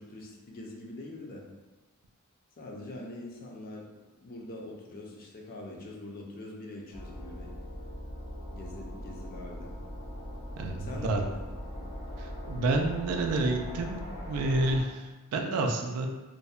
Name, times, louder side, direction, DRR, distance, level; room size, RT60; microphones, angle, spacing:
voice 1, 0.0-1.4 2.6-3.9 4.2-7.5 8.5-9.7 10.8-11.4 11.8-11.9, left 2 dB, 40° left, -1 dB, 0.4 m, -43 dB
sound 1, 6.9-14.8, equal, 70° left, 0.7 m, -40 dB
voice 2, 10.6-11.2 12.2-16.1, right 2 dB, 80° right, 3 dB, 0.3 m, -29 dB
2.5 x 2.1 x 2.3 m, 1.2 s
head